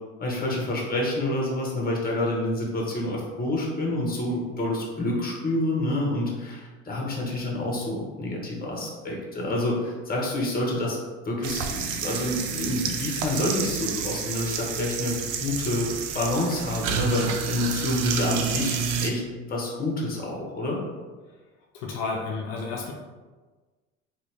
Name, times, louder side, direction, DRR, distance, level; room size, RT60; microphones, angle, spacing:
voice 1, 0.2-11.0 11.2-19.2 19.5-20.8, left 1 dB, 25° left, -2 dB, 1.0 m, -28 dB
sound 1, 11.4-19.1, right 7 dB, 60° right, 0.5 m, -30 dB
voice 2, 21.7-22.9, left 4 dB, 70° left, -1 dB, 0.5 m, -31 dB
2.7 x 2.4 x 3.3 m, 1.3 s
hypercardioid pair, 65°, 35 cm